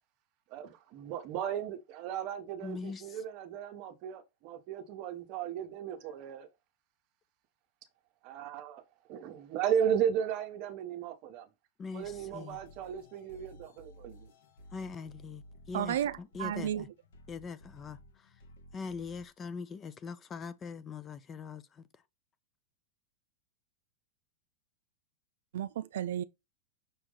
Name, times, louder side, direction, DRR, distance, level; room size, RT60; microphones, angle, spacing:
voice 1, 0.5-6.5 8.2-8.8 9.1-11.5 11.9-14.3, right 8 dB, 35° right, 1.1 m, -35 dB
voice 2, 2.6-3.2 11.8-12.6 14.7-16.9 17.3-18.4 18.7-22.0, left 5 dB, 15° left, 0.4 m, -42 dB
sound 1, 12.0-19.3, left 1 dB, 80° left, 1.9 m, -55 dB
voice 3, 15.7-16.1 16.4-16.8 25.5-26.2, right 11 dB, 75° right, 0.4 m, -32 dB
6.3 x 4.6 x 3.8 m
supercardioid pair, 175°, 0 cm